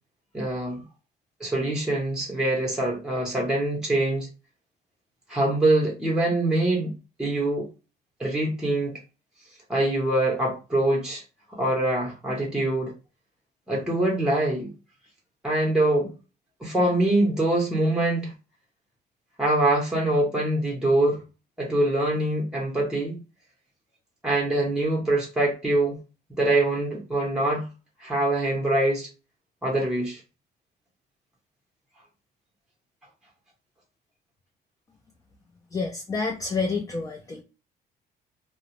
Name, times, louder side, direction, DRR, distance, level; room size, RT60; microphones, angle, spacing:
voice 1, 0.3-0.8 1.4-4.3 5.3-6.9 7.2-7.7 8.2-9.0 9.7-11.2 11.5-12.9 13.7-14.7 15.4-16.1 16.6-18.3 19.4-21.2 21.6-23.2 24.2-26.0 26.4-27.7 28.0-29.1 29.6-30.2, right 1 dB, 5° right, 0.7 m, -24 dB
voice 2, 35.7-37.4, left 4 dB, 20° left, 0.4 m, -28 dB
2.2 x 2.0 x 3.0 m
cardioid pair, 110°, 17 cm